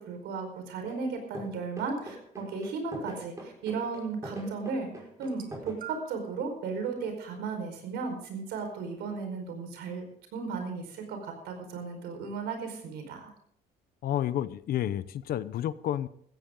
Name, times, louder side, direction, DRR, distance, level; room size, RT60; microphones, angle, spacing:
voice 1, 0.0-4.9 5.2-13.3, right 4 dB, 85° right, 6 dB, 4.8 m, -35 dB
sound 1, 0.9-1.1 1.3-5.7, right 2 dB, 20° right, 5.3 m, -42 dB
sound 2, 5.2-6.3 7.2-7.4 8.5-8.6, right 11 dB, 55° right, 2.1 m, -46 dB
voice 2, 14.0-16.1, left 11 dB, 60° left, 16 dB, 0.8 m, -30 dB
16.0 x 14.5 x 3.8 m, 0.65 s
cardioid pair, 110°, 17 cm